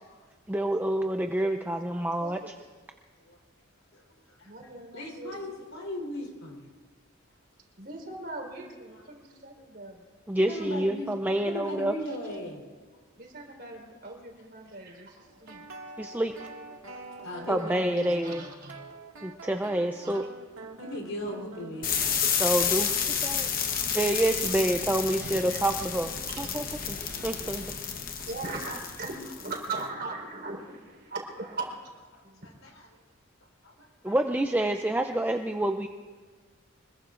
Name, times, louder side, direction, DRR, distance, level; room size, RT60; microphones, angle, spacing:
voice 1, 0.5-2.4 10.3-11.9 16.0-16.3 17.5-18.4 19.2-20.2 22.3-23.5 23.9-26.1 26.4-27.7 34.0-35.9, right 1 dB, 10° right, 6 dB, 0.4 m, -28 dB
voice 2, 2.2-2.5 4.4-5.4 7.8-10.0 12.1-12.2 13.2-15.7 18.0-18.8 20.0-20.1 23.6-24.0 24.3-24.7 25.2-25.6 26.4-26.6 26.8-26.9 28.3-31.9 32.2-32.5, right 3 dB, 50° right, 0 dB, 4.0 m, -40 dB
voice 3, 3.9-4.7 4.9-6.6 8.9-9.0 9.6-9.7 10.5-11.1 11.5-12.6 15.2-15.3 17.2-18.4 20.8-21.9 27.7-27.8 28.2-28.3 32.1-32.9 33.6-34.2, left 1 dB, 90° left, 0 dB, 3.7 m, -38 dB
sound 1, 15.3-22.2, right 2 dB, 85° right, 2.0 m, -45 dB
sound 2, 21.8-29.7, left 7 dB, 45° left, 1.0 m, -30 dB
25.5 x 21.5 x 2.5 m, 1.4 s
head